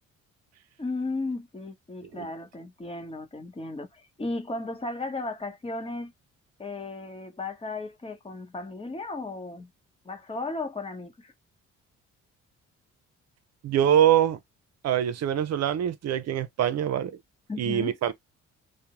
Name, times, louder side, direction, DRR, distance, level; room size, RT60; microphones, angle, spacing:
voice 1, 0.8-6.1 6.6-9.7 10.0-11.3 17.5-18.1, left 2 dB, 20° left, 0.9 m, -35 dB
voice 2, 13.6-14.4 14.8-17.2 17.6-18.1, right 10 dB, 60° right, 0.5 m, -24 dB
2.5 x 2.1 x 2.9 m
cardioid pair, 90°, 30 cm